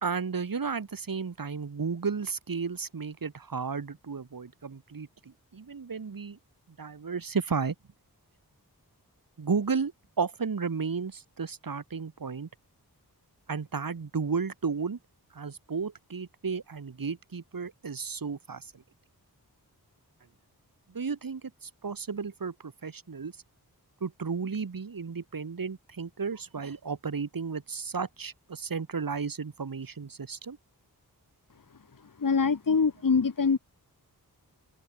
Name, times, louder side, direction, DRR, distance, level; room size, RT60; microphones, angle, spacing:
voice 1, 0.0-6.4 6.8-7.7 9.4-12.5 13.5-15.0 15.3-18.8 20.9-23.3 24.0-30.6, right 5 dB, 60° right, 1.5 m, -33 dB
voice 2, 32.2-33.6, left 5 dB, 55° left, 1.3 m, -24 dB
open air
wide cardioid pair, 45°, 39 cm